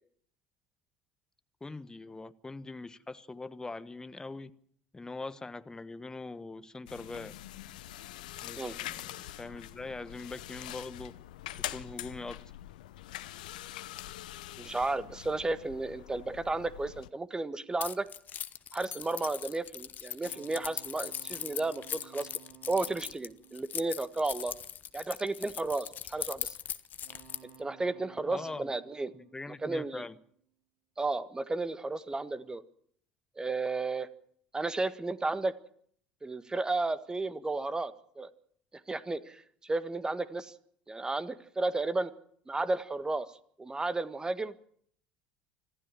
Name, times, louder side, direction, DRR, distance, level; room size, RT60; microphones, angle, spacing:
voice 1, 1.6-4.5 4.9-7.3 8.4-11.1 11.7-12.4 28.2-28.7 29.1-30.2, left 3 dB, 15° left, 1.3 m, -42 dB
sound 1, 6.9-17.1, left 14 dB, 70° left, 0.8 m, -44 dB
voice 2, 14.6-18.1 18.7-22.3 22.7-24.5 24.9-26.6 27.6-29.1 29.6-30.1 31.0-32.6 33.4-34.1 34.5-35.5 36.2-38.3 38.9-40.5 40.9-42.1 42.5-43.3 43.6-44.5, right 2 dB, 15° right, 1.7 m, -33 dB
Keys jangling, 17.8-27.6, left 9 dB, 40° left, 1.2 m, -40 dB
sound 2, 20.2-24.6 27.0-30.3, right 8 dB, 65° right, 3.2 m, -57 dB
26.0 x 15.0 x 7.4 m
figure-of-eight pair, 65°, 5 cm